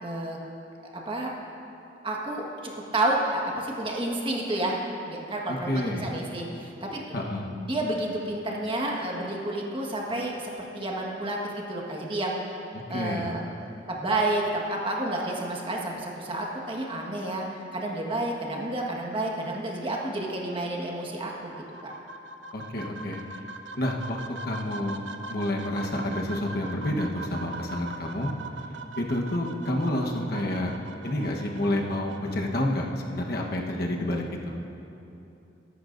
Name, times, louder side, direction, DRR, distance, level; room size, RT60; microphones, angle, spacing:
voice 1, 0.0-0.4 0.9-1.3 2.0-4.8 5.1-7.0 7.3-12.4 12.9-17.5 17.7-21.5 21.8-21.9, right 1 dB, 25° right, -1 dB, 1.5 m, -30 dB
voice 2, 5.7-6.1 7.1-7.5 12.9-13.3 22.5-23.2 23.8-25.0 25.3-28.3 29.0-30.7 31.0-34.6, left 1 dB, 55° left, 0 dB, 1.2 m, -29 dB
sound 1, 21.4-32.4, right 3 dB, 70° right, 0.6 m, -41 dB
23.0 x 11.5 x 2.6 m, 2.8 s
head